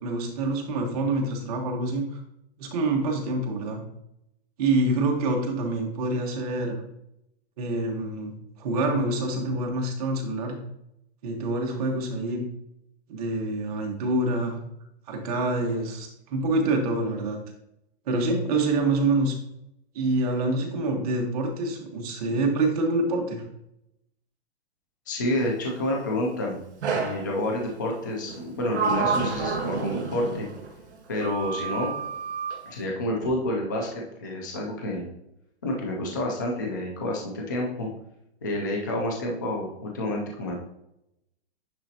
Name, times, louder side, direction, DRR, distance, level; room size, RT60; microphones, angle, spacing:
voice 1, 0.0-2.0 2.6-3.8 4.6-6.8 7.6-10.6 11.2-12.5 13.1-14.6 15.1-17.4 18.1-19.4 19.9-23.4, right 2 dB, 35° right, 1 dB, 1.2 m, -26 dB
voice 2, 25.1-26.6 26.9-30.5 31.1-31.9 32.7-35.1 35.6-37.9 38.4-40.6, left 1 dB, 20° left, -1 dB, 0.4 m, -29 dB
Sliding door, 26.8-27.3 28.3-30.7 31.2-32.6, right 5 dB, 80° right, 2.0 m, -29 dB
9.9 x 3.8 x 2.8 m, 0.82 s
hypercardioid pair, 175°, 33 cm